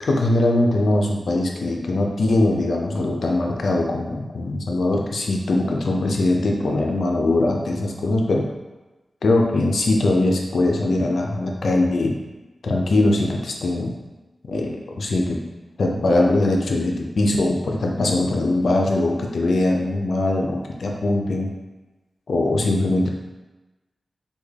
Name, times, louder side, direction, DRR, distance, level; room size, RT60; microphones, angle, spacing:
voice 1, 0.0-8.5 9.2-12.2 12.6-13.9 14.5-15.4 15.8-21.5 22.3-23.1, left 2 dB, 75° left, 0 dB, 0.5 m, -21 dB
3.4 x 2.3 x 3.2 m, 1.1 s
cardioid pair, 65°, 0 cm